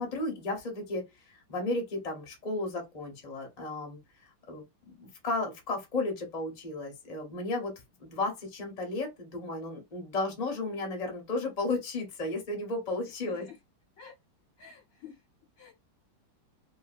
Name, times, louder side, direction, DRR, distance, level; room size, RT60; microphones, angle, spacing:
voice 1, 0.0-4.0 4.5-7.7 8.0-13.5, left 2 dB, 35° left, 0.6 m, -34 dB
voice 2, 13.2-13.6 14.0-14.1 14.6-15.2 15.6-15.7, left 7 dB, 60° left, 1.0 m, -49 dB
2.9 x 2.6 x 2.4 m
omnidirectional pair, 2.1 m